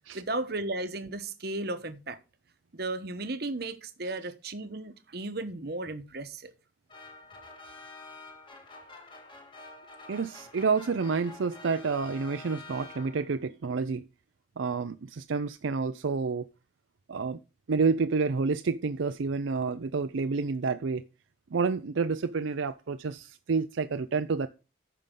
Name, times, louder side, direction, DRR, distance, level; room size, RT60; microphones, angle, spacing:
voice 1, 0.1-2.2 2.7-6.5, right 2 dB, 50° right, 1.0 m, -35 dB
sound 1, 6.9-13.4, left 2 dB, 25° left, 1.7 m, -48 dB
voice 2, 10.1-14.0 14.6-16.5 17.1-17.4 17.7-21.0 21.5-24.5, right 4 dB, 75° right, 0.5 m, -29 dB
14.0 x 5.6 x 3.8 m
head